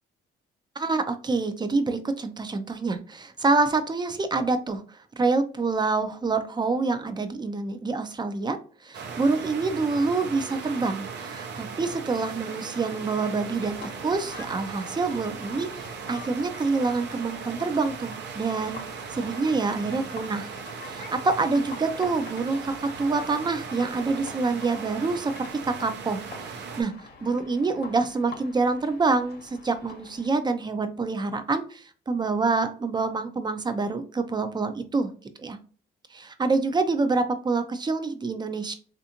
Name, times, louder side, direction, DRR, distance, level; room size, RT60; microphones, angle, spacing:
voice 1, 0.8-18.8 19.1-20.5 20.8-25.5 25.8-26.2 26.5-26.9 27.2-35.1 35.4-35.6 36.1-38.7, right 3 dB, 20° right, 9 dB, 0.5 m, -26 dB
sound 1, 8.9-26.8, right 6 dB, 65° right, 0.7 m, -38 dB
sound 2, 13.6-30.3, left 4 dB, 55° left, 1.0 m, -46 dB
3.3 x 2.5 x 2.8 m, 0.40 s
cardioid pair, 90°, 20 cm